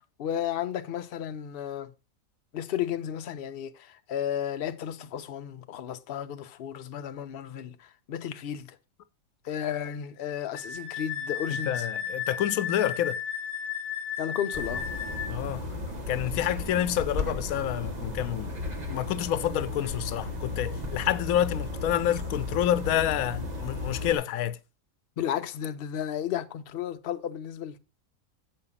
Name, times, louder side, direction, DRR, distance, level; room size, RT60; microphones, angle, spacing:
voice 1, 0.0-1.9 2.5-8.8 9.4-11.9 14.2-14.9 25.2-27.8, left 9 dB, 55° left, 0.8 m, -33 dB
Wind instrument woodwind instrument, 10.5-15.3, left 7 dB, 15° right, 3.6 m, -34 dB
voice 2, 11.5-13.2 15.3-15.7 16.1-24.6, left 11 dB, 90° left, 1.0 m, -28 dB
sound 1, 14.5-24.2, left 2 dB, 30° right, 1.3 m, -35 dB
7.6 x 4.9 x 5.5 m
omnidirectional pair, 1.4 m